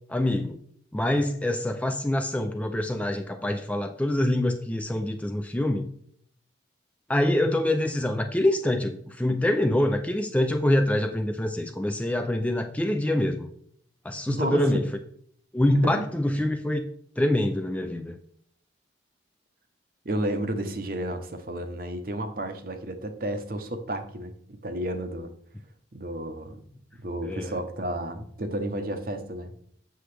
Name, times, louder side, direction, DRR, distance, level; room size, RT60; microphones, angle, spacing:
voice 1, 0.1-0.6 0.9-5.9 7.1-13.5 14.0-14.9 15.5-16.9 17.2-18.2 27.2-27.5, left 1 dB, 5° left, 6 dB, 0.3 m, -25 dB
voice 2, 14.3-14.6 15.7-16.0 20.0-25.3 25.9-26.6 27.0-29.5, right 1 dB, 50° right, 7 dB, 0.8 m, -32 dB
7.8 x 6.4 x 3.3 m, 0.64 s
head